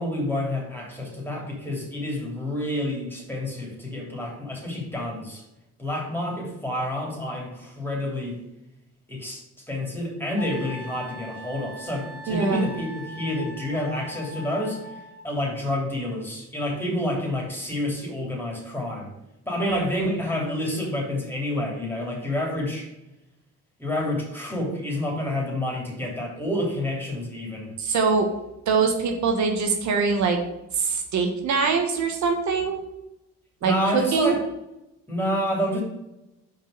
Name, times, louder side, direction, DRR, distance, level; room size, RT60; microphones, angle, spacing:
voice 1, 0.0-5.4 5.8-8.4 9.1-9.4 9.7-14.8 15.2-19.1 19.5-22.9 23.8-27.7 33.6-34.4 35.1-35.8, left 1 dB, 5° left, -2 dB, 3.2 m, -28 dB
Wind instrument woodwind instrument, 10.4-15.2, left 2 dB, 35° left, 1.4 m, -40 dB
voice 2, 12.3-12.6 19.6-19.8 27.8-28.3 28.7-30.4 30.7-32.8 33.6-34.3, right 5 dB, 70° right, 3 dB, 1.3 m, -23 dB
5.3 x 5.2 x 6.6 m, 0.91 s
cardioid pair, 90°, 30 cm